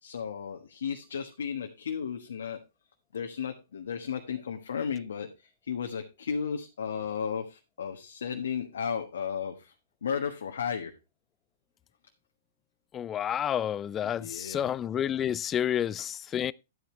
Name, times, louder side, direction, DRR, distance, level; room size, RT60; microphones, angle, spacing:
voice 1, 0.0-2.6 3.1-9.7 10.0-10.9 14.0-14.7, left 7 dB, 75° left, 1.4 m, -34 dB
voice 2, 12.9-16.5, left 10 dB, 25° left, 0.4 m, -30 dB
11.0 x 8.6 x 3.1 m
hypercardioid pair, 120°, 0 cm